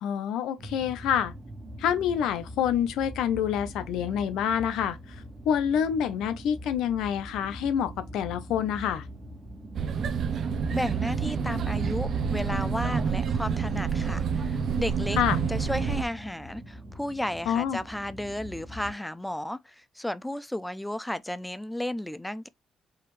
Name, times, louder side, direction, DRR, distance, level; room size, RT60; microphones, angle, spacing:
voice 1, 0.0-1.3 1.8-5.0 5.4-9.0 15.2-15.4 17.5-17.8, left 9 dB, 85° left, 0.7 m, -27 dB
sound 1, 0.6-18.9, equal, 40° right, 1.4 m, -43 dB
sound 2, 9.7-16.0, right 6 dB, 60° right, 0.6 m, -28 dB
voice 2, 10.7-15.2 15.5-22.5, left 1 dB, 5° left, 0.5 m, -33 dB
4.8 x 2.7 x 3.1 m
cardioid pair, 90°, 0 cm